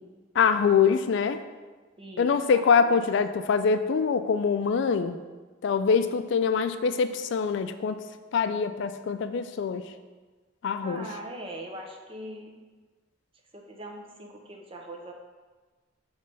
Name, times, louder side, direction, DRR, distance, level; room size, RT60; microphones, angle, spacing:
voice 1, 0.4-1.4 2.2-5.2 5.6-8.0 8.3-9.9 10.6-11.1, left 6 dB, 65° left, 11 dB, 0.3 m, -24 dB
voice 2, 2.0-3.0 10.8-12.5 13.5-15.1, right 1 dB, 30° right, 1 dB, 0.7 m, -41 dB
6.7 x 3.2 x 5.3 m, 1.3 s
head